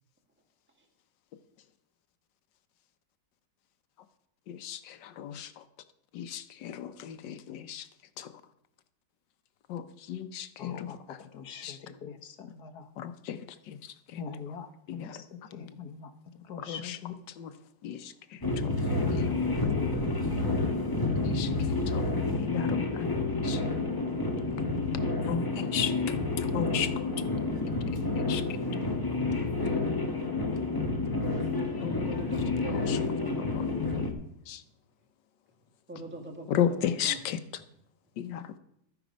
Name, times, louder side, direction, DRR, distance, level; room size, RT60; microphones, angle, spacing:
voice 1, 4.5-5.6 6.1-7.9 8.2-8.3 9.7-11.2 11.6-11.8 13.0-14.2 14.9-15.2 16.6-17.0 17.4-17.5 17.8-18.7 19.1-19.4 21.2-22.0 22.4-23.1 23.4-23.6 25.2-26.9 28.2-28.6 31.8-32.0 32.7-33.0 33.4-34.1 34.5-34.6 36.5-37.4 38.2-38.5, left 9 dB, 85° left, 11 dB, 1.5 m, -35 dB
voice 2, 10.6-12.9 14.2-17.1, left 6 dB, 65° left, 6 dB, 1.6 m, -43 dB
sound 1, 18.4-34.1, left 3 dB, 15° left, 1.3 m, -29 dB
voice 3, 31.9-33.4 35.9-37.2, equal, 5° right, 2 dB, 1.6 m, -41 dB
13.0 x 9.6 x 5.1 m, 0.75 s
omnidirectional pair, 1.9 m